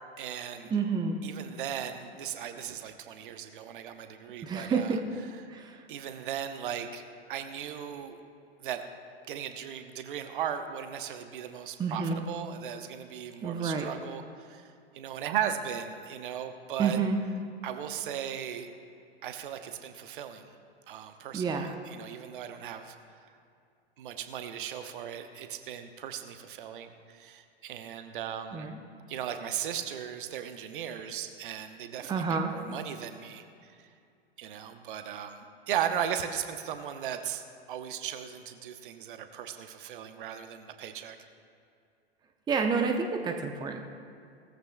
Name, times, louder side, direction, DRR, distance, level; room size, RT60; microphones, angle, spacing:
voice 1, 0.2-0.7 1.2-5.0 5.9-7.0 7.3-8.2 8.6-8.8 9.3-17.0 17.6-18.7 19.2-20.5 20.9-22.9 24.0-28.7 29.1-33.7 34.4-41.2, right 9 dB, 50° right, 8 dB, 0.9 m, -37 dB
voice 2, 0.7-1.2 4.4-5.0 5.5-5.8 11.8-12.2 13.4-13.9 16.8-17.2 21.3-21.7 28.5-28.8 32.1-32.6 42.5-43.8, right 5 dB, 15° right, 4 dB, 0.7 m, -29 dB
18.5 x 14.0 x 2.3 m, 2.4 s
figure-of-eight pair, 100°, 32 cm